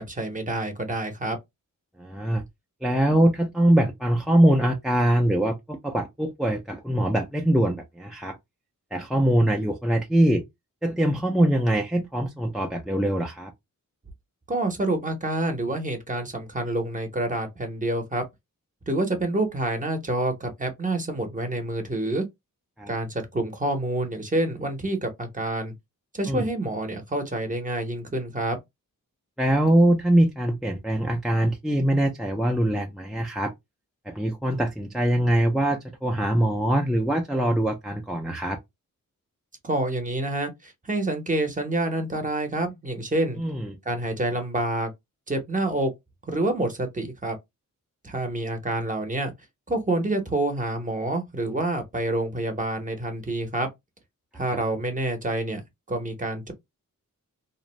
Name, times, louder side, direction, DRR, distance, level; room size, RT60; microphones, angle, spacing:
voice 1, 0.0-1.4 14.5-18.2 18.9-22.3 22.9-25.7 26.1-28.6 39.6-43.4 43.9-44.9 45.3-45.9 46.3-47.4 48.0-49.3 49.7-53.7 54.3-56.5, right 2 dB, 25° right, 0.7 m, -27 dB
voice 2, 2.0-2.4 2.8-8.4 8.9-10.4 10.8-13.5 22.8-22.9 26.3-26.5 29.4-33.5 34.1-38.6 43.4-43.8, right 1 dB, ahead, 0.3 m, -23 dB
2.5 x 2.0 x 3.0 m
wide cardioid pair, 110°, 33 cm